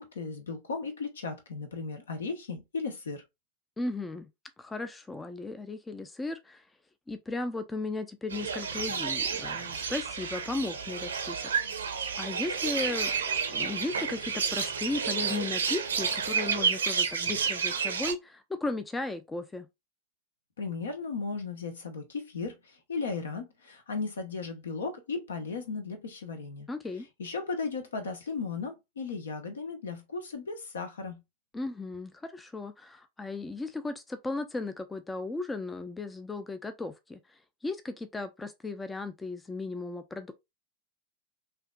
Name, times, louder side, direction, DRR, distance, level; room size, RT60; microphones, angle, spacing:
voice 1, 0.0-3.2 20.6-26.7 27.2-31.2, left 4 dB, 70° left, 1.1 m, -36 dB
voice 2, 3.8-4.3 4.6-6.6 7.1-11.5 12.2-13.1 13.5-19.7 26.7-27.1 31.5-40.3, left 3 dB, 10° left, 0.5 m, -36 dB
sound 1, 8.3-18.1, right 6 dB, 70° right, 0.8 m, -30 dB
5.7 x 2.8 x 2.3 m
figure-of-eight pair, 90°, 0 cm